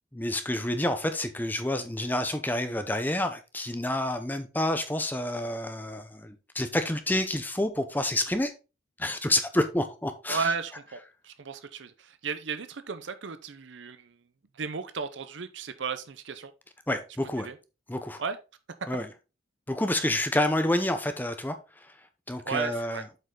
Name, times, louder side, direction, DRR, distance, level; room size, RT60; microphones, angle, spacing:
voice 1, 0.1-8.5 9.0-10.5 16.9-17.5 17.9-18.2 18.9-19.1 19.7-21.6 22.3-23.0, left 1 dB, 10° left, 0.6 m, -28 dB
voice 2, 10.3-14.2 14.5-16.5 17.4-17.6 18.2-18.4 18.8-18.9 22.4-23.1, right 5 dB, 65° right, 0.6 m, -34 dB
7.8 x 5.4 x 3.7 m
head